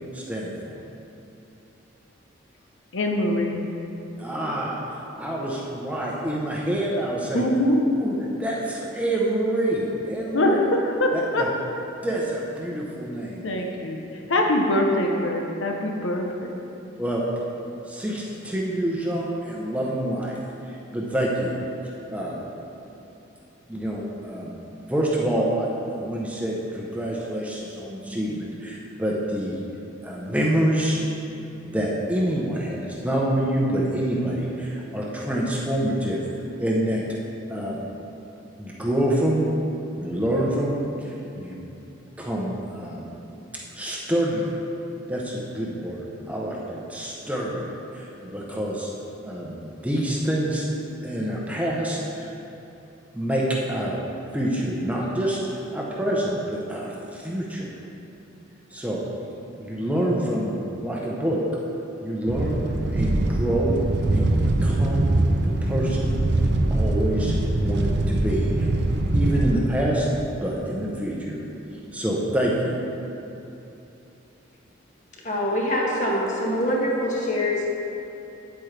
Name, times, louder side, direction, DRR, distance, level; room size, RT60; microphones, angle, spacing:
voice 1, 0.1-0.8 4.2-4.8 5.2-7.5 8.0-10.6 11.1-11.5 12.0-13.4 17.0-17.2 17.9-20.4 20.6-21.6 21.8-22.4 23.7-24.6 24.9-29.6 30.0-31.0 31.6-36.2 36.6-37.0 37.5-37.8 38.6-39.5 40.0-41.6 42.2-43.1 43.7-44.6 45.1-48.9 49.2-50.7 51.0-52.3 53.1-54.0 54.3-55.4 55.7-57.7 58.7-59.0 59.5-61.4 62.0-62.6 62.9-63.8 64.1-65.1 65.4-66.1 66.4-68.7 69.1-70.1 70.4-71.4 71.9-72.8, right 1 dB, 5° right, -4 dB, 0.8 m, -27 dB
voice 2, 2.9-3.6 7.3-7.8 10.3-11.4 13.4-14.0 14.3-16.3 16.5-16.6, left 1 dB, 70° left, 1 dB, 0.8 m, -23 dB
sound 1, 62.3-69.6, right 2 dB, 55° right, 0.6 m, -23 dB
voice 3, 75.2-77.7, left 1 dB, 40° left, -3 dB, 1.4 m, -24 dB
9.2 x 8.5 x 3.3 m, 2.9 s
head